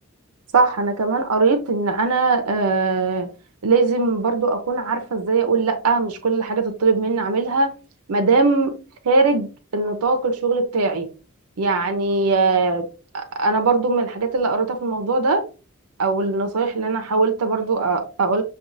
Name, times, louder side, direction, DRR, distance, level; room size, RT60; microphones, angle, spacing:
voice 1, 0.5-3.3 3.6-7.7 8.1-8.7 9.0-11.1 11.6-12.9 13.1-15.4 16.0-18.4, right 3 dB, 90° right, 0.6 m, -20 dB
5.9 x 2.3 x 2.6 m
head